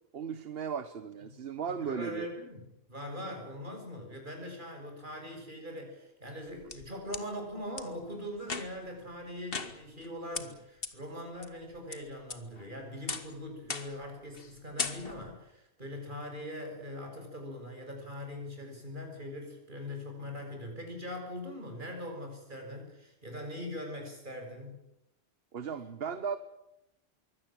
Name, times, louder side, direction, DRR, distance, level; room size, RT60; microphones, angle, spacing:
voice 1, 0.1-2.3 25.5-26.4, right 6 dB, 65° right, 12 dB, 1.3 m, -36 dB
voice 2, 1.7-24.8, left 1 dB, 50° right, 2 dB, 7.2 m, -42 dB
sound 1, 6.3-7.2 7.8-7.9 8.4-8.9 9.5-10.1 10.3-10.4 10.8-10.9 11.4-12.0 12.3-12.7 13.1-13.3 13.7-14.0 14.3-14.5 14.8-15.3, left 4 dB, 60° left, 1.8 m, -37 dB
23.5 x 17.0 x 9.0 m, 0.87 s
omnidirectional pair, 1.1 m